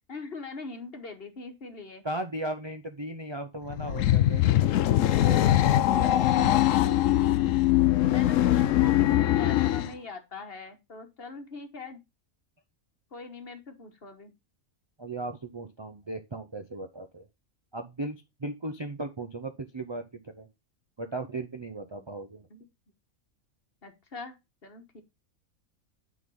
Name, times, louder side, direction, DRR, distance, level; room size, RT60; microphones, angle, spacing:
voice 1, 0.1-2.0 8.0-12.0 13.1-14.3 22.0-22.1 22.5-22.6 23.8-24.4 24.6-25.0, left 3 dB, 45° left, 6 dB, 1.4 m, -41 dB
voice 2, 2.0-4.6 5.3-7.0 15.0-17.3 17.7-20.5 21.0-22.5, right 2 dB, 30° right, 5 dB, 0.5 m, -37 dB
sound 1, 3.7-9.9, left 13 dB, 70° left, 0.9 m, -22 dB
9.4 x 3.9 x 5.4 m, 0.24 s
omnidirectional pair, 1.5 m